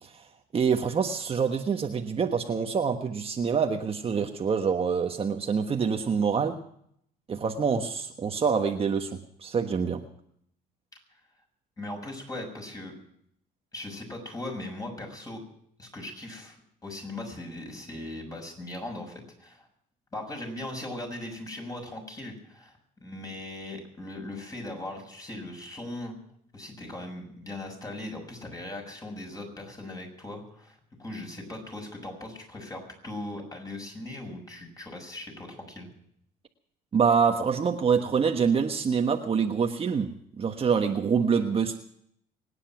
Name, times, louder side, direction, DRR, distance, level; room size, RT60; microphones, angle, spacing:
voice 1, 0.5-6.6 7.3-10.0 36.9-41.8, right 6 dB, 35° right, 5 dB, 1.3 m, -26 dB
voice 2, 11.8-12.9 13.7-15.4 15.8-16.6 16.8-19.7 20.1-26.2 26.5-35.9, left 1 dB, 20° left, 2 dB, 6.7 m, -39 dB
24.0 x 10.0 x 6.0 m, 0.69 s
cardioid pair, 110°, 17 cm